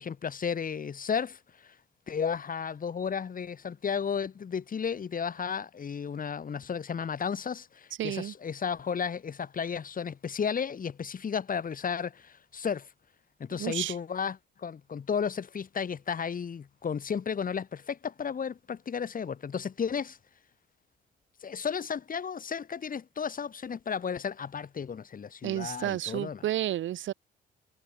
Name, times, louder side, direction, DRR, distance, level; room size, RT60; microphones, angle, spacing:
voice 1, 0.0-1.8 2.1-12.9 13.4-20.2 21.4-26.4, left 6 dB, 45° left, 3.3 m, -33 dB
voice 2, 8.0-8.3 13.6-13.9 25.4-27.1, right 12 dB, 75° right, 2.0 m, -31 dB
cardioid pair, 90°, 20 cm